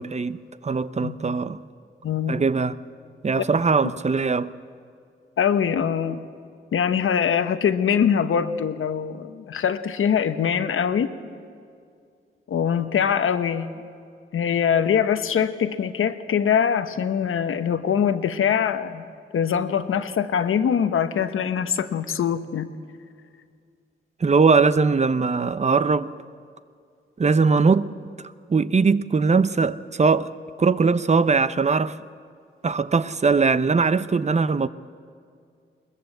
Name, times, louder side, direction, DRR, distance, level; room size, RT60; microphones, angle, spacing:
voice 1, 0.0-1.6 2.3-2.8 3.2-4.5 24.2-26.1 27.2-27.9 28.5-30.3 30.6-32.0 32.6-34.7, right 4 dB, 35° right, 0.7 m, -20 dB
voice 2, 2.0-2.4 3.4-3.5 5.4-6.2 6.7-11.1 12.5-13.8 14.3-19.1 19.3-22.7, left 8 dB, 80° left, 1.1 m, -23 dB
21.5 x 20.5 x 7.9 m
wide cardioid pair, 95°, 21 cm